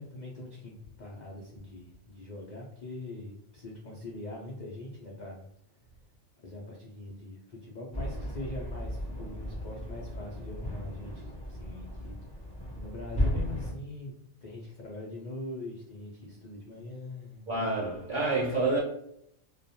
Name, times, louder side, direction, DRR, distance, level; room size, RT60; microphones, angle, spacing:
voice 1, 0.0-5.5 6.4-12.5 12.7-14.1 14.4-17.5, left 2 dB, 70° left, 0.4 m, -42 dB
sound 1, 7.9-13.7, equal, 10° left, 0.5 m, -35 dB
voice 2, 17.5-18.8, right 2 dB, 55° right, 0.5 m, -28 dB
2.3 x 2.2 x 2.7 m
omnidirectional pair, 1.4 m